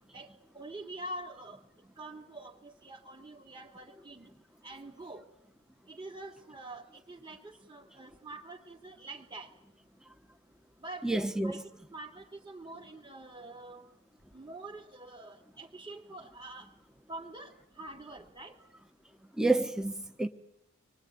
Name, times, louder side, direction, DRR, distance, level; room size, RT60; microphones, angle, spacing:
voice 1, 0.5-1.6 2.0-4.3 4.6-5.2 5.9-9.5 10.8-11.6 11.9-13.9 14.3-16.7 17.1-18.5, right 2 dB, 20° right, 2.8 m, -46 dB
voice 2, 11.0-11.6 19.4-20.3, right 2 dB, 5° right, 1.1 m, -29 dB
26.5 x 23.0 x 9.5 m
head